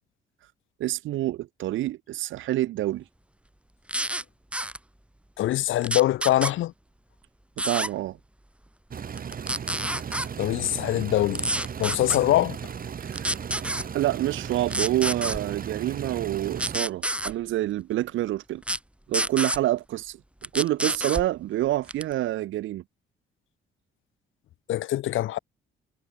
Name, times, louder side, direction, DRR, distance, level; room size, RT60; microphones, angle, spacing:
voice 1, 0.8-3.0 7.6-8.2 13.0-13.4 13.9-18.6 19.1-20.2 20.5-22.8, right 15 dB, 80° right, 0.9 m, -27 dB
sound 1, 3.9-4.2 4.5-4.8 5.8-6.5 7.6-7.9 9.2-10.3 11.4-12.2 13.1-13.9 14.7-15.4 16.6-17.3 18.6-18.8 19.1-19.6 20.4-21.3 21.9-22.1, right 1 dB, 5° right, 4.9 m, -28 dB
voice 2, 5.4-6.7 10.4-11.5 11.8-12.6 24.7-25.4, left 14 dB, 80° left, 1.1 m, -23 dB
sound 2, 8.9-16.8, right 7 dB, 45° right, 2.2 m, -36 dB
cardioid pair, 90°, 20 cm